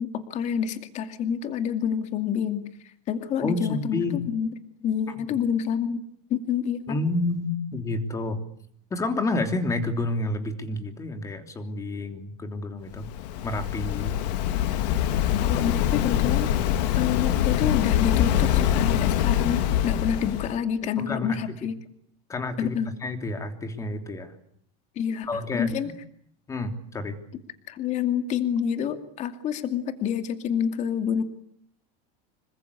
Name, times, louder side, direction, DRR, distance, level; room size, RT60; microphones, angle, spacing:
voice 1, 0.0-2.6 3.1-4.5 4.8-6.0 6.3-7.0 15.3-21.8 22.6-22.9 25.0-25.3 25.5-25.9 27.7-31.2, left 8 dB, 35° left, 8 dB, 2.5 m, -28 dB
voice 2, 3.4-4.2 6.9-8.4 8.9-13.1 13.4-14.2 21.0-21.4 22.3-22.8 23.0-24.3 25.3-25.7 26.5-27.2, left 2 dB, 15° left, 6 dB, 3.1 m, -29 dB
Waves surf, 12.9-20.6, left 11 dB, 80° left, 2.4 m, -24 dB
27.0 x 24.5 x 8.5 m, 0.66 s
cardioid pair, 165°, 21 cm